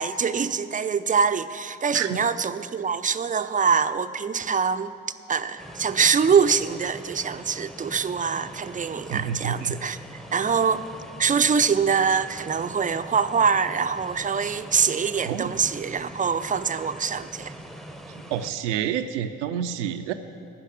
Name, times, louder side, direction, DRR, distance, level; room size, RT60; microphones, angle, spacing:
voice 1, 0.0-4.9 5.3-10.0 10.3-10.9 11.2-17.5, right 6 dB, 20° right, 11 dB, 0.6 m, -24 dB
sound 1, 5.6-18.5, right 1 dB, ahead, 0.9 m, -42 dB
voice 2, 9.1-9.7 15.2-15.5 18.3-20.1, right 9 dB, 80° right, 9 dB, 0.6 m, -28 dB
16.0 x 5.6 x 9.9 m, 2.4 s
figure-of-eight pair, 40°, 36 cm